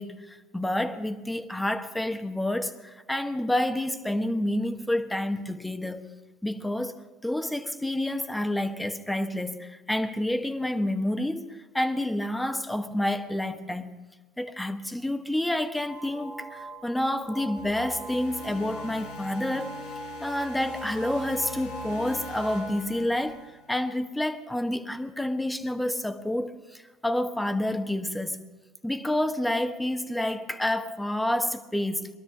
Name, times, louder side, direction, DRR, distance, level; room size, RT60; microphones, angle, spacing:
voice 1, 0.0-6.0 6.4-6.9 7.2-13.9 14.4-19.7 20.2-23.4 23.7-28.4 28.8-32.1, left 1 dB, 5° left, 1.3 m, -29 dB
sound 1, 15.9-23.4, right 1 dB, 60° right, 2.5 m, -41 dB
sound 2, 17.6-23.7, left 4 dB, 85° left, 2.3 m, -43 dB
22.0 x 13.0 x 3.6 m
hypercardioid pair, 80°, 0 cm